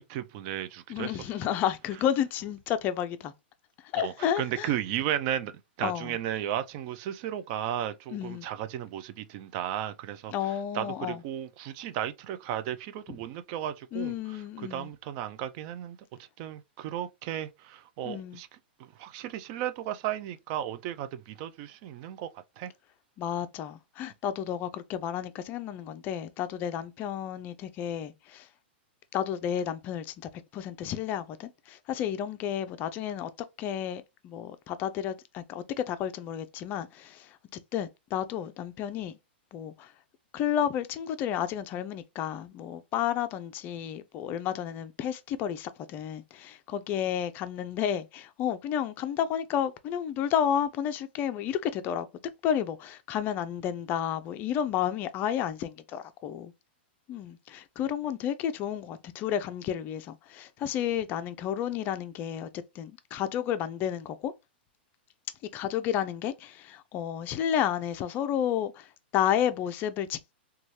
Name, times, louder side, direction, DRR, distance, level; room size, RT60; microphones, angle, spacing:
voice 1, 0.0-1.2 3.9-5.5 5.8-18.5 18.8-22.3 22.6-22.7, right 11 dB, 45° right, 0.3 m, -34 dB
voice 2, 0.9-3.3 3.9-4.7 5.8-6.2 8.1-8.5 10.3-11.2 13.9-14.9 18.0-18.4 23.2-28.5 29.1-30.1 30.5-33.3 33.6-37.4 37.7-39.2 39.5-39.9 40.3-52.1 52.4-56.5 57.1-64.3 65.5-70.3, left 9 dB, 35° left, 0.4 m, -31 dB
3.1 x 2.3 x 2.7 m
hypercardioid pair, 125°, 6 cm